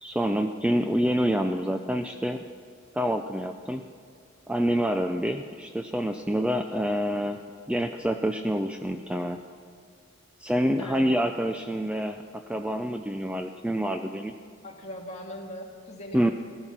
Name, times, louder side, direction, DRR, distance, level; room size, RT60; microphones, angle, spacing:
voice 1, 0.0-2.4 2.9-3.8 4.5-7.4 7.7-9.4 10.4-14.3 16.1-16.3, equal, 5° right, 6 dB, 0.4 m, -27 dB
voice 2, 14.6-16.3, equal, 30° left, -1 dB, 2.0 m, -40 dB
16.5 x 12.5 x 5.8 m, 2.3 s
head